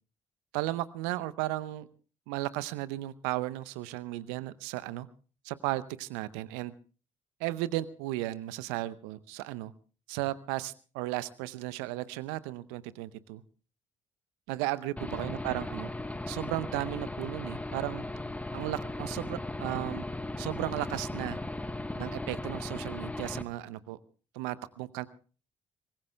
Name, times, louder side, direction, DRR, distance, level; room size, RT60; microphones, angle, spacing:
voice 1, 0.5-1.9 2.3-5.1 5.4-6.7 7.4-9.7 10.1-13.4 14.5-15.9 16.3-18.0 18.5-20.1 20.4-21.4 22.0-24.0 24.3-25.1, right 16 dB, 75° right, 17 dB, 0.7 m, -35 dB
Aircraft / Engine, 15.0-23.4, left 2 dB, 10° left, 1.2 m, -37 dB
25.5 x 20.5 x 2.3 m, 0.37 s
figure-of-eight pair, 40°, 15 cm